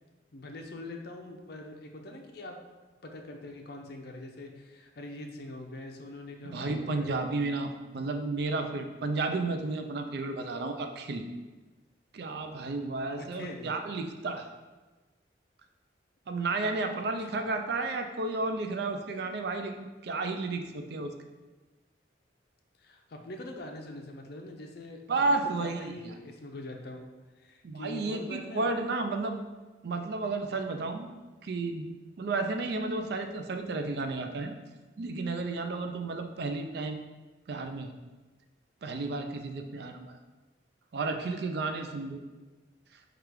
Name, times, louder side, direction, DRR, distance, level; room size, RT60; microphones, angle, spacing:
voice 1, 0.3-2.6 3.0-7.2 13.2-13.7 22.8-27.1 27.4-28.7, left 1 dB, 60° left, 3 dB, 0.5 m, -43 dB
voice 2, 6.4-11.2 12.1-14.5 16.3-21.1 25.1-26.1 27.6-29.4 29.8-31.1 31.4-31.9 32.2-34.5 35.0-37.0 37.5-37.9 38.8-40.2 40.9-42.2, right 3 dB, 60° right, 5 dB, 0.4 m, -32 dB
4.8 x 2.4 x 4.6 m, 1.2 s
head